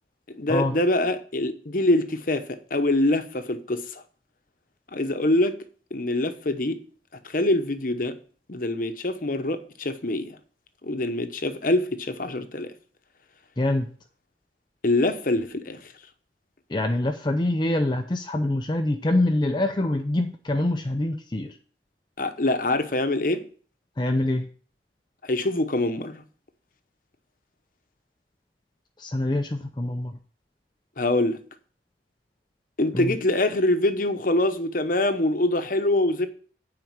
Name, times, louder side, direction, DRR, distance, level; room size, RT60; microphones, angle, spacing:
voice 1, 0.3-4.0 4.9-5.6 5.9-6.8 7.2-8.2 8.5-10.4 10.8-12.7 14.8-15.9 22.2-23.5 25.2-26.2 31.0-31.4 32.8-36.3, left 1 dB, 50° left, 1.0 m, -24 dB
voice 2, 13.6-13.9 16.7-21.6 24.0-24.5 29.0-30.2 32.9-33.2, left 1 dB, 25° left, 0.6 m, -25 dB
9.3 x 4.9 x 7.3 m
head